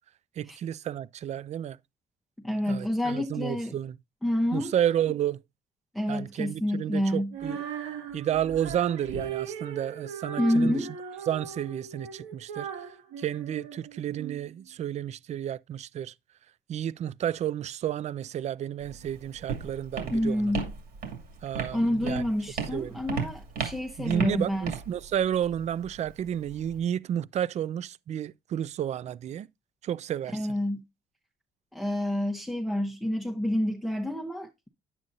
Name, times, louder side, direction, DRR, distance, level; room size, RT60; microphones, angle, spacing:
voice 1, 0.4-1.8 2.7-4.0 4.5-5.4 6.1-7.6 8.1-10.9 11.3-12.9 13.2-16.1 16.7-20.6 21.4-22.2 22.7-23.0 24.0-29.5 29.8-30.6, right 10 dB, 45° right, 0.4 m, -31 dB
voice 2, 2.4-3.7 4.2-4.7 5.9-7.3 10.4-10.9 20.1-20.7 21.7-24.7 30.3-30.8 31.7-34.7, left 1 dB, ahead, 0.8 m, -28 dB
Female singing, 7.3-14.4, right 7 dB, 85° right, 2.0 m, -39 dB
Walk footsteps, 18.8-26.8, right 6 dB, 65° right, 2.5 m, -36 dB
9.3 x 7.5 x 2.6 m
cardioid pair, 110°, 17 cm